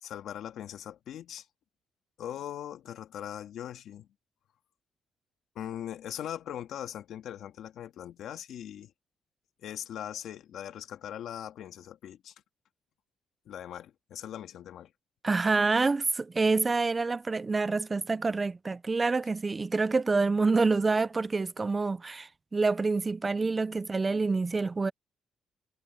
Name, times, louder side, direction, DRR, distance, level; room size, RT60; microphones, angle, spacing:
voice 1, 0.0-1.5 2.2-4.1 5.6-8.9 9.6-12.3 13.5-14.9, left 10 dB, 75° left, 2.0 m, -40 dB
voice 2, 15.2-24.9, right 3 dB, 25° right, 0.4 m, -27 dB
cardioid pair, 90°, 0 cm